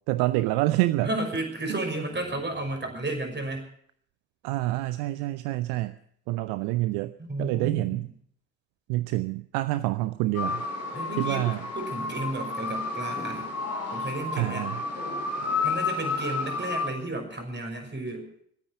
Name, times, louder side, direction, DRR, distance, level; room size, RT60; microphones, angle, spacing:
voice 1, 0.1-1.1 1.7-1.8 4.4-5.9 6.3-7.1 7.4-8.1 8.9-10.6 11.2-11.6 14.4-14.8, right 17 dB, 65° right, 14 dB, 0.7 m, -27 dB
voice 2, 1.0-3.7 7.2-8.0 10.9-11.5 11.8-13.5 13.9-14.7 15.4-18.3, right 2 dB, 25° right, 4 dB, 5.9 m, -33 dB
sound 1, 10.3-16.9, left 4 dB, 75° left, 3.6 m, -31 dB
21.0 x 9.6 x 7.0 m, 0.65 s
figure-of-eight pair, 45°, 42 cm